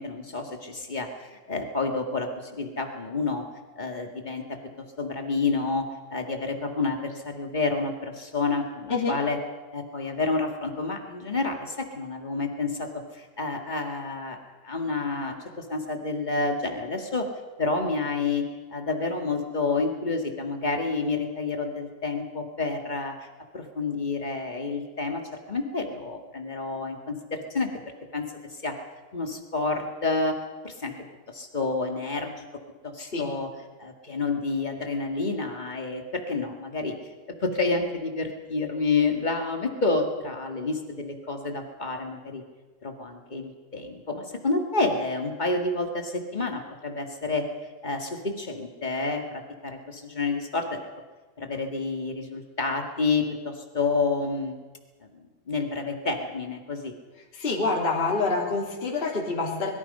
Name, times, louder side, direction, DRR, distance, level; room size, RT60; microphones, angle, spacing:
voice 1, 0.0-3.4 3.7-4.4 5.0-9.4 9.7-14.4 14.6-17.3 17.6-18.4 18.7-23.1 23.5-25.2 25.5-27.7 28.1-28.2 28.5-28.7 29.1-30.3 30.6-30.9 31.3-32.4 32.8-33.5 33.8-37.1 37.4-42.4 42.8-47.4 47.8-50.8 51.4-54.6 55.1-56.9, left 3 dB, 35° left, 3 dB, 0.7 m, -29 dB
voice 2, 57.3-59.7, left 3 dB, 15° left, -2 dB, 3.2 m, -26 dB
24.5 x 22.5 x 5.6 m, 1.3 s
omnidirectional pair, 4.4 m